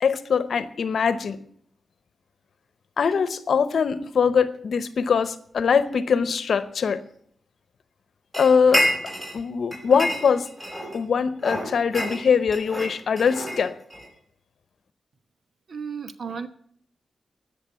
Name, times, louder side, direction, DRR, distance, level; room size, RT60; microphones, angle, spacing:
voice 1, 0.0-1.4 3.0-7.0 8.4-8.9 9.3-10.5 10.9-13.7, left 6 dB, 70° left, 13 dB, 0.8 m, -22 dB
sound 1, 8.3-9.4 9.7-11.0 11.4-14.1, equal, 15° right, 5.5 m, -28 dB
voice 2, 15.7-16.5, right 6 dB, 65° right, 10 dB, 1.1 m, -33 dB
19.0 x 6.8 x 6.9 m, 0.62 s
wide cardioid pair, 95°, 0 cm